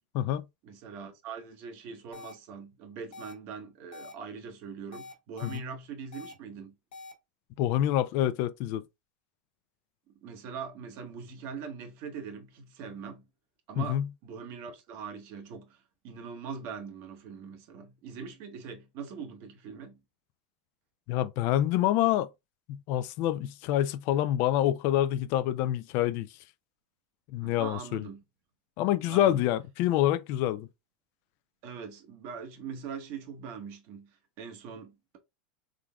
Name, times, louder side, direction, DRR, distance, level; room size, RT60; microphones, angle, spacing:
voice 1, 0.6-6.7 10.2-13.2 13.7-20.0 27.4-28.2 29.1-29.4 31.6-35.2, right 6 dB, 55° right, 1.0 m, -42 dB
sound 1, 2.1-2.3 3.1-3.3 3.9-4.1 4.9-5.6 6.1-6.3 6.9-7.1, left 3 dB, 85° left, 1.1 m, -45 dB
voice 2, 7.6-8.8 13.8-14.1 21.1-22.3 22.7-26.3 27.3-28.0 28.8-30.7, left 12 dB, 55° left, 0.4 m, -27 dB
3.7 x 3.4 x 2.2 m
hypercardioid pair, 105°, 5 cm